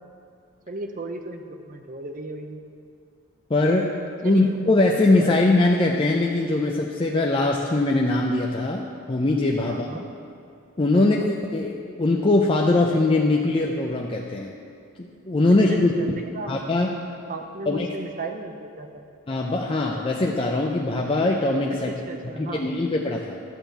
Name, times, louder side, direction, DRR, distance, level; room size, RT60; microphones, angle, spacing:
voice 1, 0.7-2.6 4.2-4.6 5.2-5.4 9.6-10.1 10.9-11.3 15.7-16.5 17.3-19.1 21.7-22.8, right 2 dB, 40° right, 5 dB, 0.7 m, -35 dB
voice 2, 3.5-4.0 4.2-9.9 10.8-14.5 15.0-15.9 16.5-16.9 17.7-17.9 19.3-21.9 22.4-23.4, left 2 dB, 25° left, -1 dB, 0.5 m, -21 dB
12.0 x 4.3 x 8.0 m, 2.4 s
head